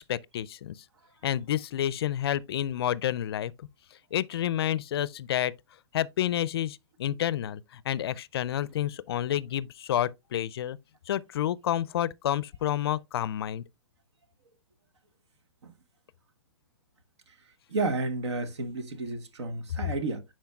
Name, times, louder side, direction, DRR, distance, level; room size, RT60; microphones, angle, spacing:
voice 1, 0.1-0.7 1.2-3.5 4.1-5.5 5.9-10.8 11.1-13.6, left 11 dB, 60° left, 0.4 m, -29 dB
voice 2, 17.7-20.2, right 3 dB, 75° right, 1.3 m, -31 dB
10.5 x 4.4 x 2.3 m
hypercardioid pair, 140°, 15 cm